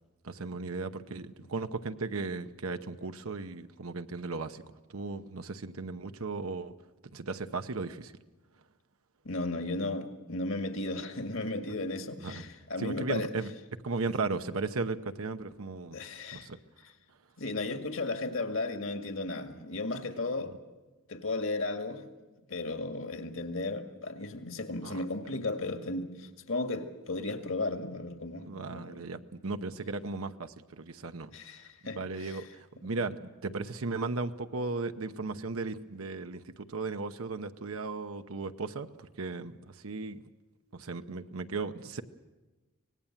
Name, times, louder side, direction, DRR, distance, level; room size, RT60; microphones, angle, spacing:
voice 1, 0.2-4.6 4.9-6.7 7.1-8.1 12.2-12.4 12.8-13.5 13.8-16.0 16.3-16.6 24.8-25.0 28.4-31.3 31.8-40.2 40.7-42.0, right 3 dB, 85° right, 0.9 m, -36 dB
voice 2, 9.2-13.3 15.9-16.5 17.4-20.5 21.1-22.0 22.5-29.0 31.3-32.5, left 2 dB, 70° left, 2.0 m, -35 dB
25.0 x 19.0 x 7.3 m
head